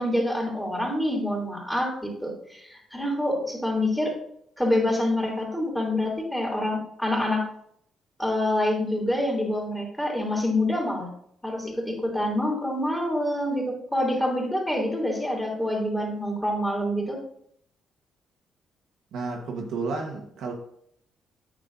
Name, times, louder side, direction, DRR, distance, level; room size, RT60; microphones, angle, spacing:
voice 1, 0.0-4.1 4.6-7.4 8.2-11.1 11.4-17.2, left 1 dB, 5° left, 3.1 m, -26 dB
voice 2, 19.1-20.5, right 4 dB, 80° right, 1.4 m, -31 dB
9.1 x 6.5 x 2.7 m
cardioid pair, 90°, 0 cm